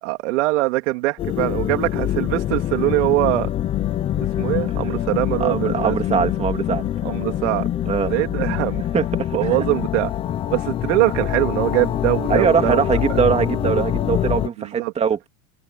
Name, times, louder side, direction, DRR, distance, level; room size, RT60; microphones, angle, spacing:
voice 1, 0.0-3.5 4.2-6.2 7.0-7.7 8.1-8.8 9.3-10.1 10.5-12.8 13.1-13.2 14.6-14.9, right 21 dB, 70° right, 2.6 m, -22 dB
sound 1, 1.2-14.5, left 11 dB, 15° left, 0.5 m, -24 dB
voice 2, 5.4-6.9 7.9-8.1 8.9-9.5 12.3-15.3, right 7 dB, 15° right, 2.5 m, -21 dB
supercardioid pair, 175°, 37 cm